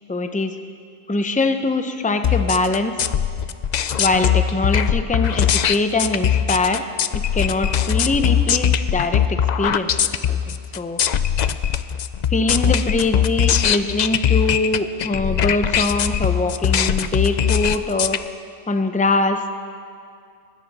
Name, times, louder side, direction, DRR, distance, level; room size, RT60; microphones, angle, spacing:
voice 1, 0.1-0.6 1.1-2.9 4.0-6.8 7.1-11.0 12.3-18.2 18.7-19.5, left 2 dB, 10° left, 7 dB, 0.4 m, -23 dB
sound 1, 2.2-18.2, left 9 dB, 80° left, 0.4 m, -20 dB
20.0 x 16.5 x 4.2 m, 2.3 s
omnidirectional pair, 1.3 m